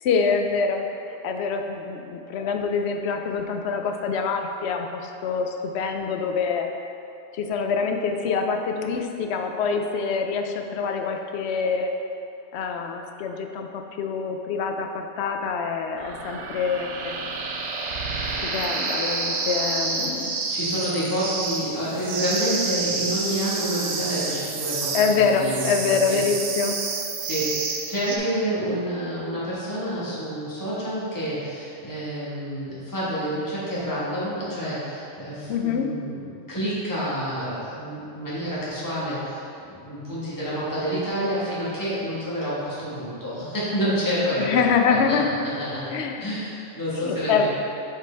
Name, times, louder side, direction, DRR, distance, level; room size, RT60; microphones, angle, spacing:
voice 1, 0.0-6.7 7.3-11.9 12.5-17.2 18.4-20.4 24.9-26.8 35.5-35.9 44.4-45.3 45.9-46.5 47.0-47.5, left 5 dB, 65° left, 5 dB, 0.8 m, -25 dB
sound 1, 16.0-28.2, right 4 dB, 70° right, 0.9 m, -29 dB
voice 2, 20.5-26.2 27.2-44.6 44.9-45.2 45.4-47.5, equal, 15° left, -9 dB, 1.6 m, -28 dB
7.5 x 5.1 x 3.4 m, 2.7 s
omnidirectional pair, 1.3 m